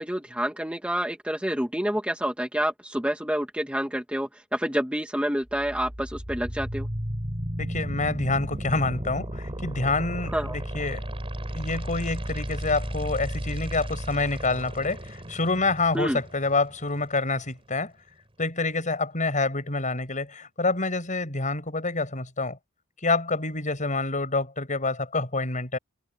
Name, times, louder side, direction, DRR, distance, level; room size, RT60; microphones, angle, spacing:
voice 1, 0.0-6.9 10.3-10.6 15.9-16.2, right 1 dB, 5° right, 2.2 m, -28 dB
sound 1, 5.5-17.5, equal, 25° right, 4.6 m, -34 dB
voice 2, 7.6-11.1 11.5-17.9 18.4-22.6 23.0-25.8, left 3 dB, 35° left, 6.9 m, -27 dB
head